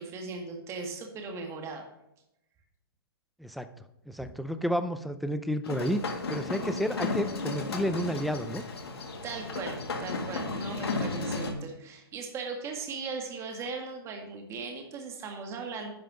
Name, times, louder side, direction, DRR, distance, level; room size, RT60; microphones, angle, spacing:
voice 1, 0.0-1.9 4.2-4.3 9.2-15.9, right 4 dB, 20° right, 2 dB, 1.8 m, -38 dB
voice 2, 4.1-8.6, equal, ahead, 9 dB, 0.4 m, -31 dB
sound 1, 5.6-11.5, left 3 dB, 90° left, 1.8 m, -34 dB
10.5 x 5.6 x 5.0 m, 0.86 s
hypercardioid pair, 145°, 13 cm